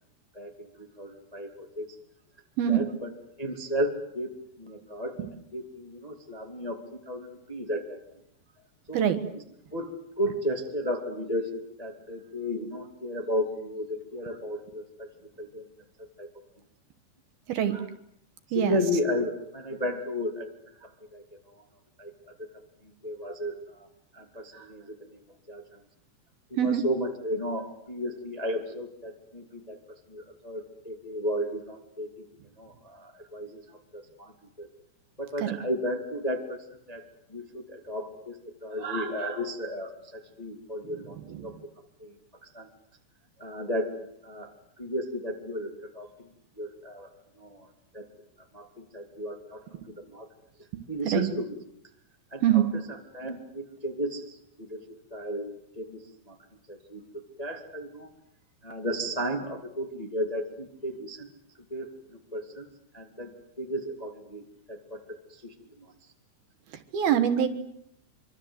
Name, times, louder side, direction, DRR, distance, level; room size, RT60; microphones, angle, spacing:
voice 1, 0.3-2.0 2.7-3.1 3.4-4.3 4.6-6.8 7.0-8.0 8.9-9.0 9.7-15.1 15.4-15.6 16.2-16.3 17.7-17.8 18.5-20.5 20.7-21.6 22.0-22.3 22.8-23.9 24.1-25.2 25.5-25.6 26.5-29.8 30.1-32.2 32.6-34.3 34.6-34.7 35.2-36.6 36.9-37.0 37.3-41.5 42.0-42.7 43.4-44.5 44.8-47.1 47.4-47.7 47.9-48.0 48.5-49.6 49.9-50.3 50.9-51.5 52.3-52.6 53.1-54.8 55.1-56.3 56.7-58.1 58.6-61.3 61.7-62.7 62.9-64.4 64.7-65.9, equal, 15° left, 3 dB, 1.5 m, -34 dB
voice 2, 2.6-2.9 5.2-5.3 8.9-9.2 17.5-17.8 18.5-18.8 26.6-26.9 35.4-35.6 41.1-41.5 49.7-49.8 50.7-51.3 52.4-52.7 66.7-67.5, right 10 dB, 65° right, 8 dB, 3.0 m, -25 dB
25.0 x 25.0 x 8.0 m, 0.74 s
omnidirectional pair, 5.0 m